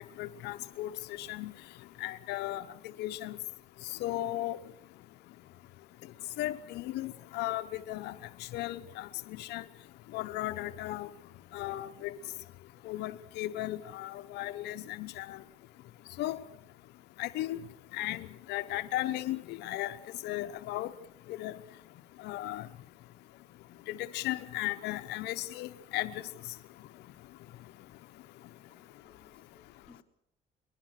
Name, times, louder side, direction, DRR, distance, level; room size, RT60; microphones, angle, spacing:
voice 1, 0.2-1.5 2.0-2.7 3.0-3.4 4.0-4.6 6.4-8.1 8.5-9.1 9.4-9.6 10.1-11.1 11.5-12.1 12.8-15.4 16.2-16.4 17.2-17.6 17.9-20.0 20.2-20.9 21.4-21.5 22.2-22.7 23.9-26.2, left 15 dB, 85° left, 10 dB, 0.9 m, -35 dB
voice 2, 28.5-30.0, left 3 dB, 5° left, 0 dB, 3.7 m, -63 dB
21.5 x 21.5 x 6.5 m, 0.78 s
cardioid pair, 110°, 17 cm